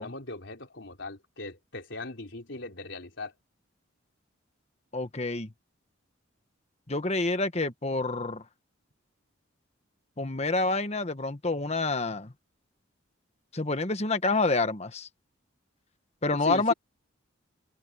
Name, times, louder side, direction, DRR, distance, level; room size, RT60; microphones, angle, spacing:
voice 1, 0.0-3.3 16.3-16.7, left 2 dB, 65° left, 4.1 m, -39 dB
voice 2, 4.9-5.5 6.9-8.4 10.2-12.3 13.5-15.1 16.2-16.7, left 3 dB, 35° left, 1.4 m, -28 dB
head